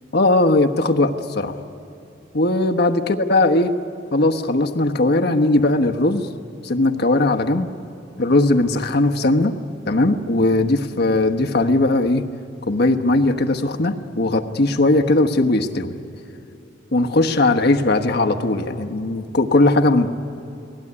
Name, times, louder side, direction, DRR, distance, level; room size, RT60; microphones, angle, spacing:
voice 1, 0.1-1.5 2.3-3.7 4.1-6.3 6.6-7.7 8.2-9.5 9.9-12.2 12.7-16.0 16.9-20.1, left 2 dB, 60° left, 5 dB, 1.2 m, -18 dB
30.0 x 19.0 x 9.8 m, 2.9 s
head